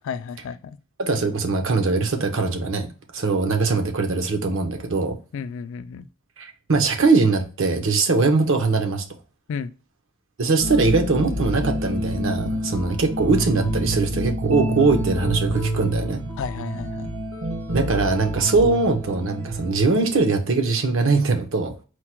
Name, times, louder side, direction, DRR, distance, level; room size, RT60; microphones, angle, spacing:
voice 1, 0.0-0.8 5.3-6.0 9.5-9.7 16.4-17.1, left 6 dB, 65° left, 0.3 m, -32 dB
voice 2, 1.0-2.9 3.1-5.2 6.4-9.0 10.4-16.2 17.7-21.7, right 3 dB, 65° right, 0.7 m, -21 dB
sound 1, 10.6-20.2, right 1 dB, 85° right, 1.0 m, -28 dB
4.5 x 2.2 x 4.4 m
head